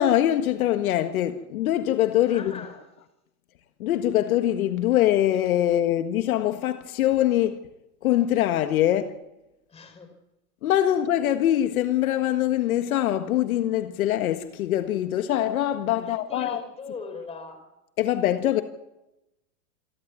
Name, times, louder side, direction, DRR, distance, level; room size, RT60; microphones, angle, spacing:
voice 1, 0.0-2.5 3.8-7.6 8.0-9.1 10.6-16.6 18.0-18.6, left 12 dB, 65° left, 1.7 m, -23 dB
voice 2, 2.3-2.8 9.7-10.2 16.0-17.7, left 5 dB, 15° left, 4.2 m, -40 dB
27.5 x 11.5 x 9.5 m
supercardioid pair, 155°, 46 cm